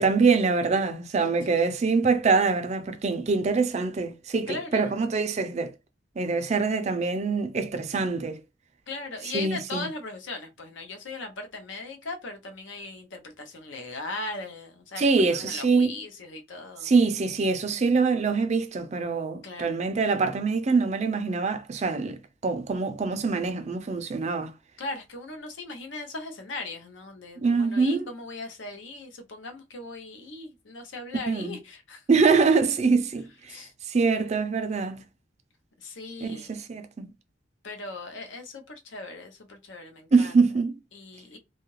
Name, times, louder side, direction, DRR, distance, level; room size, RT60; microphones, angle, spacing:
voice 1, 0.0-5.7 6.2-8.4 9.3-9.9 15.0-15.9 16.8-22.2 22.4-24.5 27.4-28.1 31.3-31.6 32.1-35.0 36.2-37.1 40.1-40.7, right 4 dB, 35° right, 0.4 m, -24 dB
voice 2, 4.5-4.9 8.9-16.9 19.4-19.9 24.8-32.0 33.5-33.7 35.8-36.6 37.6-40.3 40.9-41.4, left 3 dB, 80° left, 0.7 m, -38 dB
2.7 x 2.4 x 3.1 m
head